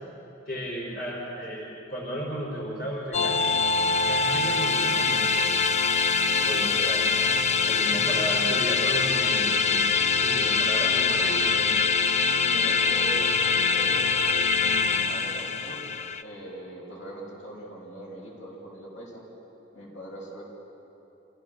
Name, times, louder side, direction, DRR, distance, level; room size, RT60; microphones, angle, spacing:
voice 1, 0.5-3.5 4.1-5.5 6.4-7.0 7.6-9.8 10.2-11.7, equal, 55° left, -6 dB, 4.4 m, -34 dB
sound 1, 3.1-16.2, left 5 dB, 35° left, 0.5 m, -24 dB
voice 2, 6.3-6.8 10.7-11.0 12.4-14.1 14.6-15.8 16.2-19.2 19.7-20.4, right 1 dB, 80° left, -4 dB, 6.1 m, -41 dB
27.5 x 16.0 x 6.4 m, 3.0 s
head